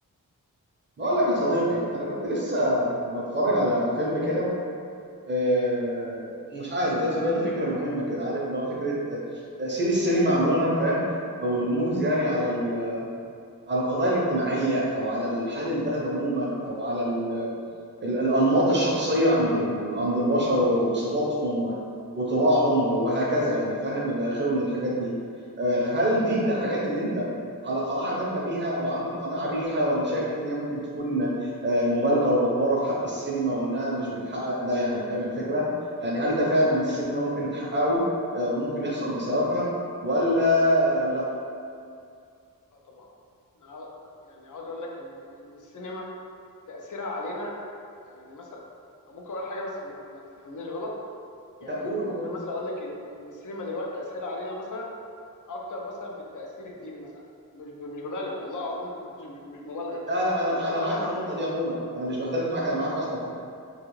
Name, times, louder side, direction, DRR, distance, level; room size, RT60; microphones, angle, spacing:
voice 1, 1.0-4.5 5.3-9.2 9.6-11.0 11.4-13.1 13.7-17.5 18.0-21.8 22.1-25.1 25.6-27.3 27.6-35.7 36.0-38.1 38.3-39.7 40.0-41.3 51.6-52.3 60.1-63.3, equal, 30° right, -5 dB, 0.6 m, -25 dB
voice 2, 43.6-46.1 46.7-47.5 48.0-48.5 49.1-50.9 51.6-54.9 55.5-57.1 57.5-58.9 59.2-60.0 60.5-61.1, left 2 dB, 60° left, -1 dB, 0.5 m, -36 dB
2.3 x 2.3 x 3.0 m, 2.4 s
wide cardioid pair, 80°, 35 cm